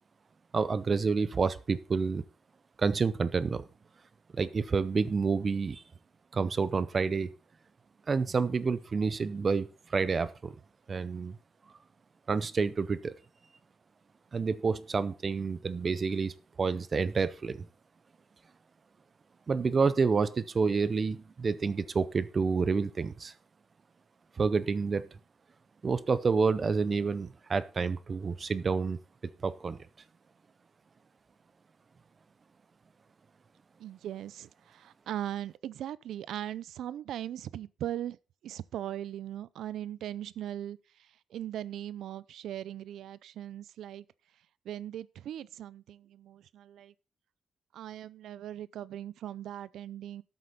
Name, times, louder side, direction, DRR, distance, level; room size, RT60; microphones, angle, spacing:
voice 1, 0.5-2.2 2.8-3.6 4.3-5.8 6.3-7.3 8.1-10.5 10.9-11.4 12.3-13.1 14.3-17.7 19.5-23.3 24.4-25.1 25.8-29.0 29.4-29.8, right 5 dB, 25° right, 0.6 m, -29 dB
voice 2, 33.8-38.2 38.4-44.0 44.6-46.9 47.7-50.2, right 11 dB, 75° right, 0.5 m, -39 dB
13.0 x 8.0 x 4.1 m
cardioid pair, 180°, 0 cm